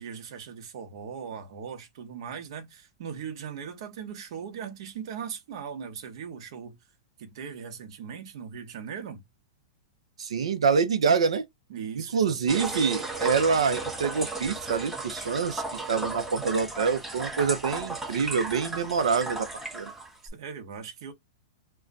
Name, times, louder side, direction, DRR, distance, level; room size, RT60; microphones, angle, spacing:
voice 1, 0.0-6.8 7.2-9.2 11.7-12.7 20.3-21.1, right 7 dB, 65° right, 1.0 m, -39 dB
voice 2, 10.2-11.4 11.9-15.6 15.9-19.5 19.7-19.9, right 5 dB, 85° right, 0.7 m, -26 dB
sound 1, 12.5-20.3, right 2 dB, 5° right, 0.7 m, -35 dB
2.3 x 2.2 x 3.8 m
hypercardioid pair, 130°, 3 cm